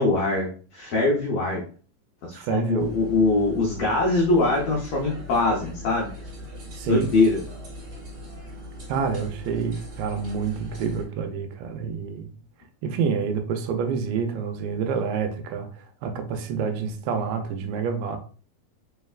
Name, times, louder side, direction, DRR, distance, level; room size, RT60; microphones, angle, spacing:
voice 1, 0.0-1.6 2.2-6.1 6.8-7.4, left 3 dB, 85° left, 1.4 m, -22 dB
voice 2, 2.3-2.9 6.8-7.1 8.9-12.3 12.8-18.2, right 6 dB, 85° right, 2.4 m, -28 dB
sound 1, 2.8-11.1, equal, 40° right, 1.9 m, -40 dB
5.2 x 3.3 x 2.4 m
omnidirectional pair, 4.1 m